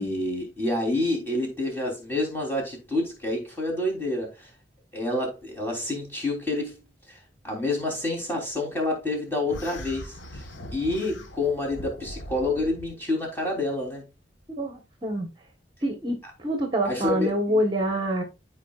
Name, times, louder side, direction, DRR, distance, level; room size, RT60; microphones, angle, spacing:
voice 1, 0.0-4.5 4.9-6.7 7.1-7.2 7.4-10.4 10.7-14.0 16.8-17.6, left 2 dB, 10° left, 3.3 m, -28 dB
sound 1, 9.5-12.9, equal, 90° left, 1.2 m, -40 dB
voice 2, 14.6-15.3 15.8-18.2, right 1 dB, 25° right, 1.2 m, -26 dB
13.5 x 4.8 x 2.4 m
head